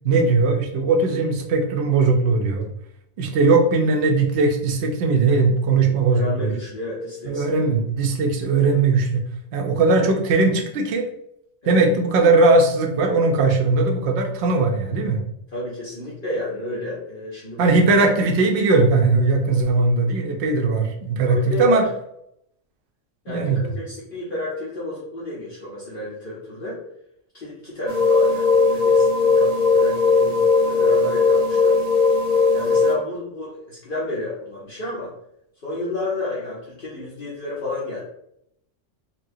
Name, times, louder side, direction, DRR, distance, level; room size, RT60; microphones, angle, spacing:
voice 1, 0.0-2.7 3.2-6.5 7.3-9.2 9.5-11.1 11.7-15.2 17.6-21.8 23.3-23.6, right 3 dB, 65° right, 3 dB, 0.9 m, -19 dB
voice 2, 6.1-7.5 11.6-11.8 15.5-17.8 21.2-21.8 23.2-26.8 27.3-31.8 32.5-35.1 35.6-38.0, left 2 dB, 50° left, -8 dB, 1.0 m, -31 dB
sound 1, 27.9-32.9, left 4 dB, 45° right, 0.5 m, -18 dB
4.2 x 2.2 x 2.6 m, 0.76 s
omnidirectional pair, 1.3 m